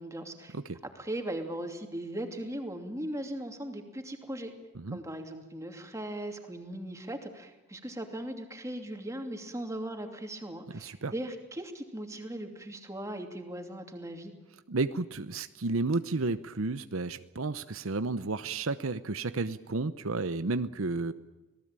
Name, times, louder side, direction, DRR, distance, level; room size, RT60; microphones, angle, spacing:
voice 1, 0.0-0.6 0.8-4.5 4.9-14.3, right 1 dB, 15° right, 4 dB, 2.8 m, -38 dB
voice 2, 10.7-11.1 14.7-21.1, right 3 dB, 75° right, 12 dB, 0.8 m, -32 dB
26.0 x 18.5 x 9.0 m, 1.1 s
head